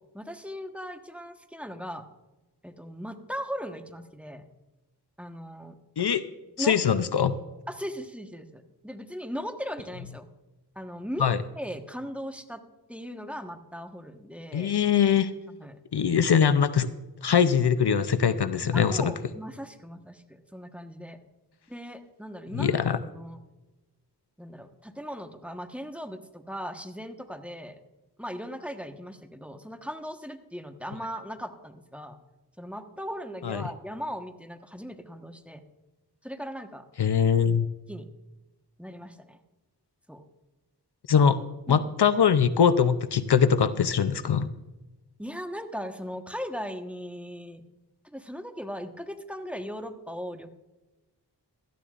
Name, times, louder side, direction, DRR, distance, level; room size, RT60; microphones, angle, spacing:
voice 1, 0.1-2.1 2.6-4.4 5.2-5.8 6.6-7.0 7.7-10.3 10.7-11.3 11.5-12.6 12.9-14.7 15.5-15.8 18.7-21.2 21.7-22.8 23.2-23.4 24.4-27.8 28.2-32.2 32.6-35.6 36.2-36.8 37.9-38.1 38.8-39.4 40.1-40.2 41.1-41.3 41.7-41.9 45.2-47.6 48.0-50.5, equal, 5° right, 6 dB, 1.3 m, -38 dB
voice 2, 6.6-7.4 11.2-11.4 14.5-15.3 15.9-16.9 17.2-19.1 22.5-23.0 33.4-33.6 37.0-37.7 41.1-41.4 41.7-44.5, left 7 dB, 65° left, 12 dB, 0.7 m, -22 dB
17.0 x 13.5 x 2.5 m, 1.1 s
cardioid pair, 45°, 42 cm